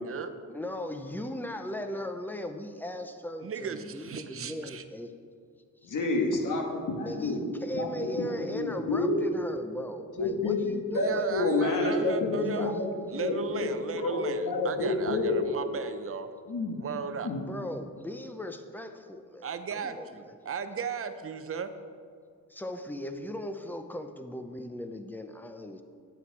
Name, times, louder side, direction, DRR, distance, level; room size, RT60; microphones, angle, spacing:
voice 1, 0.5-5.1 5.8-5.9 7.0-11.3 12.6-12.9 17.3-20.3 22.5-25.8, left 1 dB, 5° left, 7 dB, 0.5 m, -38 dB
voice 2, 3.4-4.8 10.9-12.8 13.1-16.3 16.8-17.3 19.4-21.7, right 6 dB, 45° right, 9 dB, 0.6 m, -35 dB
voice 3, 5.8-7.4 7.7-8.3 8.5-9.2 10.2-15.4 16.5-16.9 17.2-17.4, left 3 dB, 70° left, 1 dB, 1.6 m, -29 dB
10.0 x 8.4 x 4.7 m, 2.1 s
wide cardioid pair, 160°, 32 cm